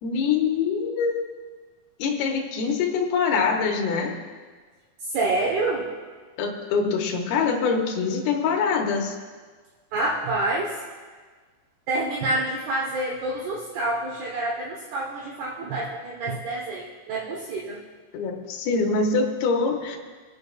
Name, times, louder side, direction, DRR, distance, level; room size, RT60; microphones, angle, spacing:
voice 1, 0.0-1.3 2.0-4.2 6.4-9.2 18.1-20.0, left 5 dB, 70° left, 1 dB, 2.6 m, -24 dB
voice 2, 5.0-5.9 9.9-10.8 11.9-17.8, right 2 dB, 70° right, -3 dB, 2.8 m, -27 dB
28.0 x 10.5 x 2.3 m, 1.5 s
omnidirectional pair, 5.5 m